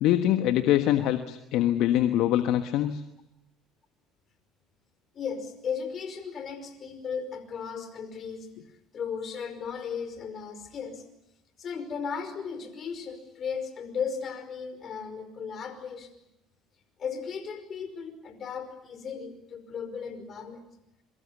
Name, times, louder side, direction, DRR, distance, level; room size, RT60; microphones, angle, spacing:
voice 1, 0.0-3.0, left 12 dB, 65° left, 8 dB, 1.3 m, -24 dB
voice 2, 5.1-8.5 8.9-11.0 11.6-16.1 17.0-20.6, left 6 dB, 45° left, 9 dB, 5.3 m, -36 dB
27.0 x 24.0 x 7.1 m, 0.88 s
hypercardioid pair, 65°, 0 cm